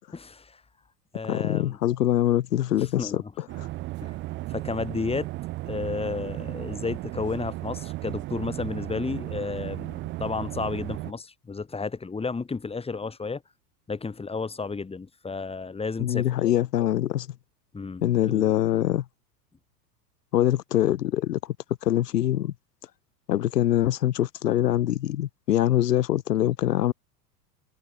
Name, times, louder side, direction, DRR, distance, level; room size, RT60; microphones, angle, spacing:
voice 1, 0.1-0.6 1.1-1.8 2.8-3.3 4.0-4.1 4.5-5.3 5.7-13.4 13.9-16.3 17.7-18.5, left 4 dB, 10° left, 4.3 m, -32 dB
voice 2, 1.3-3.7 16.0-17.3 18.0-19.0 20.3-21.5 21.8-22.5 23.3-26.9, left 12 dB, 80° left, 0.5 m, -24 dB
sound 1, 3.5-11.1, right 18 dB, 25° right, 0.6 m, -35 dB
figure-of-eight pair, 90°, 47 cm